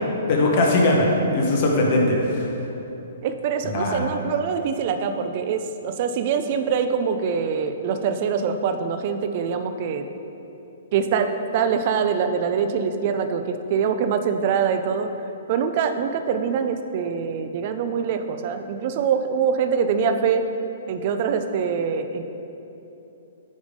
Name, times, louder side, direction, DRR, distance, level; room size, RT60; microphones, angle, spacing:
voice 1, 0.3-2.5 3.6-4.0, left 2 dB, 45° left, -1 dB, 1.3 m, -20 dB
voice 2, 3.2-10.1 10.9-15.1 15.5-20.4 20.9-22.2, right 6 dB, 45° right, 8 dB, 0.5 m, -24 dB
9.0 x 3.5 x 5.2 m, 3.0 s
hypercardioid pair, 145°, 0 cm